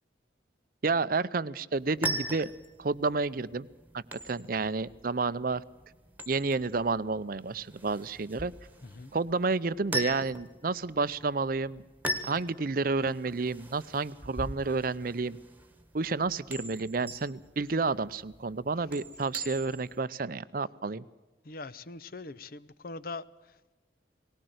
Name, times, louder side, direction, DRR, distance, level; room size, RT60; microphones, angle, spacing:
voice 1, 0.8-2.5 2.8-3.7 3.9-5.6 6.3-8.5 9.1-11.8 12.3-15.4 15.9-21.0, right 4 dB, 50° right, 0.6 m, -30 dB
sound 1, 1.7-20.0, right 1 dB, 10° right, 1.5 m, -40 dB
voice 2, 21.4-23.2, left 3 dB, 50° left, 0.7 m, -41 dB
19.0 x 18.0 x 7.9 m
head